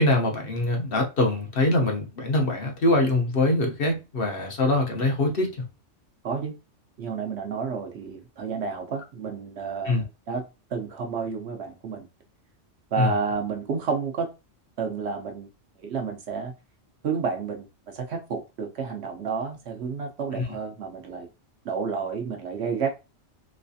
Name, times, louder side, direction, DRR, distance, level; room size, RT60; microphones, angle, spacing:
voice 1, 0.0-5.5 9.9-10.0 13.0-13.1 20.3-20.4, left 2 dB, 55° left, 0.9 m, -23 dB
voice 2, 6.2-6.5 7.0-10.5 10.7-12.1 12.9-14.3 14.8-15.5 15.8-16.5 17.0-17.7 17.9-21.3 21.6-22.9, right 5 dB, 65° right, 1.0 m, -30 dB
3.2 x 3.2 x 2.6 m
omnidirectional pair, 1.3 m